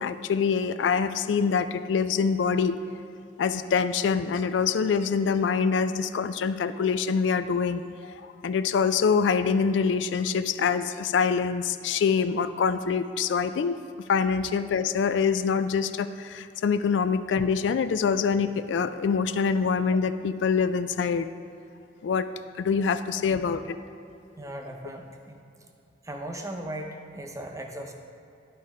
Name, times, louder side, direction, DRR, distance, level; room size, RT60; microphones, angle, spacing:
voice 1, 0.0-2.8 3.4-13.8 14.1-21.3 22.0-22.3 22.6-23.6, left 5 dB, 85° left, 11 dB, 0.3 m, -25 dB
voice 2, 24.4-25.4 26.0-27.9, right 1 dB, 20° right, 2 dB, 0.7 m, -38 dB
11.0 x 4.2 x 4.9 m, 2.7 s
head